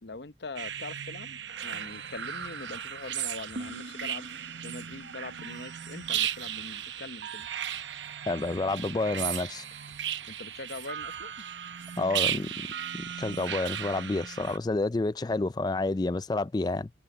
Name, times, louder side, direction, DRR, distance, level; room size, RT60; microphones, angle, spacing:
voice 1, 0.0-7.5 10.3-11.3, left 3 dB, 65° left, 0.8 m, -43 dB
sound 1, 0.6-14.6, right 10 dB, 80° right, 0.8 m, -36 dB
sound 2, 2.4-12.4, left 1 dB, 40° left, 7.7 m, -64 dB
voice 2, 8.3-9.7 12.0-12.7 13.2-16.9, left 2 dB, 20° left, 0.3 m, -29 dB
head